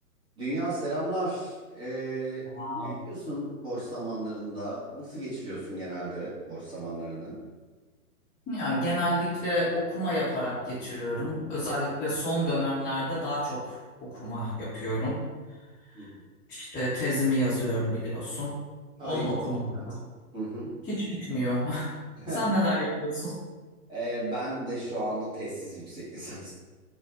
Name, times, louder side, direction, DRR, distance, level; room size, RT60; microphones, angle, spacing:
voice 1, 0.4-7.4 15.9-16.1 19.0-19.3 20.3-20.7 22.2-22.6 23.9-26.5, right 1 dB, 10° right, -9 dB, 1.2 m, -34 dB
voice 2, 2.5-2.9 8.5-15.2 15.9-16.1 16.5-18.5 19.0-20.0 20.9-21.9 22.3-23.3, equal, 15° left, -11 dB, 1.1 m, -29 dB
4.4 x 2.5 x 3.6 m, 1.3 s
hypercardioid pair, 125°, 47 cm